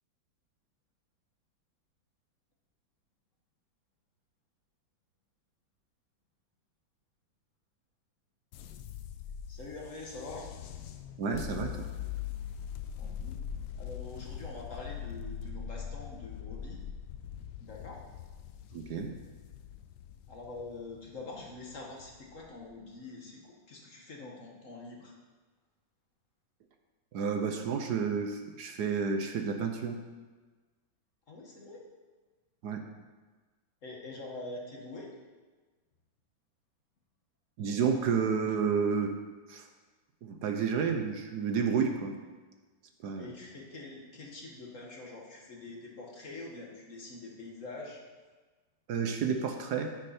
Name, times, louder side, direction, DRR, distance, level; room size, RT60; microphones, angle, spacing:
sound 1, 8.5-22.7, left 8 dB, 85° left, 1.4 m, -42 dB
voice 1, 9.5-10.5 13.0-13.4 13.8-16.8 17.6-18.0 20.3-25.2 31.3-31.8 33.8-35.1 43.2-48.0, left 2 dB, 45° left, -1 dB, 1.7 m, -45 dB
voice 2, 11.2-11.9 18.7-19.1 27.1-30.0 32.6-32.8 37.6-39.1 39.5-39.7 40.2-42.1 43.0-43.3 48.9-49.9, right 6 dB, 65° right, 5 dB, 1.3 m, -30 dB
10.0 x 9.8 x 4.3 m, 1.3 s
omnidirectional pair, 2.0 m